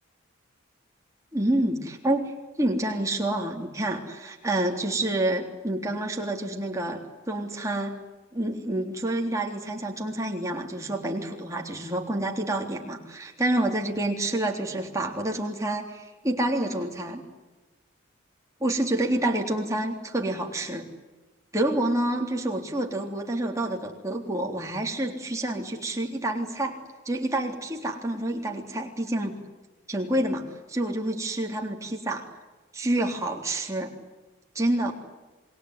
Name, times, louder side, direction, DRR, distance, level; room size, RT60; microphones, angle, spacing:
voice 1, 1.3-2.2 2.6-8.0 8.3-17.2 18.6-20.9 21.5-26.8 27.1-29.3 29.9-32.3 32.7-33.9 34.6-34.9, right 1 dB, 15° right, 1 dB, 3.5 m, -28 dB
27.5 x 21.0 x 9.8 m, 1.2 s
head